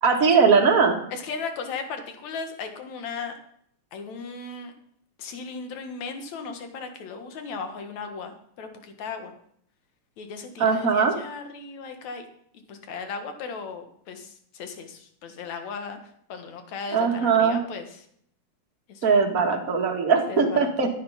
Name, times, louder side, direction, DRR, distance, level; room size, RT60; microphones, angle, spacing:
voice 1, 0.0-1.0 10.6-11.1 16.9-17.6 19.0-20.9, right 5 dB, 35° right, 2 dB, 1.9 m, -20 dB
voice 2, 1.1-3.4 3.9-4.7 5.2-9.3 10.2-12.3 12.5-16.0 16.3-17.9 18.9-19.0 19.4-19.6 20.3-20.7, left 5 dB, 70° left, 6 dB, 2.8 m, -36 dB
13.5 x 9.7 x 5.7 m, 0.67 s
omnidirectional pair, 3.4 m